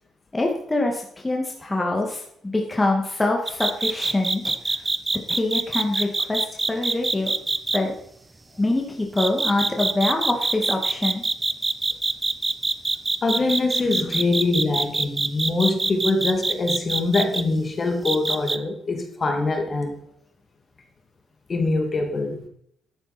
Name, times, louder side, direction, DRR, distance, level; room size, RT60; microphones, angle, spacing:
voice 1, 0.3-4.7 5.3-7.3 7.7-7.9 8.6-11.2, left 2 dB, 15° left, 1 dB, 2.1 m, -25 dB
sound 1, 3.5-7.8 9.2-17.4 18.0-18.6, right 3 dB, 25° right, 0.9 m, -24 dB
voice 2, 13.2-19.9 21.5-22.4, left 3 dB, 35° left, 4 dB, 2.7 m, -24 dB
12.0 x 8.9 x 4.4 m, 0.70 s
cardioid pair, 90°, 0 cm